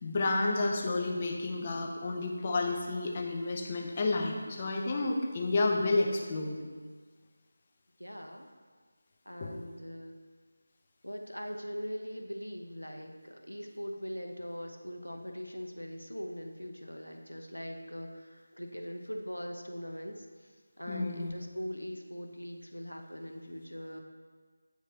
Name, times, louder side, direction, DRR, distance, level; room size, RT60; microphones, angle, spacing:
voice 1, 0.0-6.6 9.4-9.6 20.9-21.3, left 2 dB, 25° left, 1 dB, 0.6 m, -30 dB
voice 2, 8.0-8.5 9.3-10.1 11.0-24.0, equal, 85° left, 3 dB, 0.7 m, -41 dB
8.8 x 4.6 x 2.7 m, 1.5 s
figure-of-eight pair, 165°, 0 cm